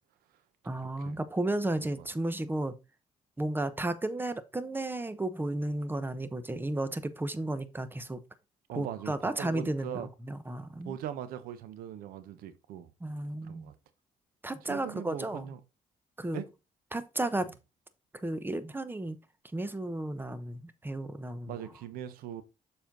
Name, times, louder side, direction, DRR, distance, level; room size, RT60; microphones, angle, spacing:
voice 1, 0.6-2.7 3.4-8.2 8.7-10.9 13.0-13.7 14.4-15.4 16.2-16.4 16.9-17.5 18.1-19.2 19.5-21.6, right 2 dB, 15° right, 1.0 m, -33 dB
voice 2, 8.7-10.1 10.8-12.9 13.4-13.7 14.7-15.6 16.3-16.5 17.4-17.5 21.5-22.4, right 10 dB, 90° right, 0.9 m, -40 dB
7.1 x 4.5 x 3.8 m
cardioid pair, 80°, 15 cm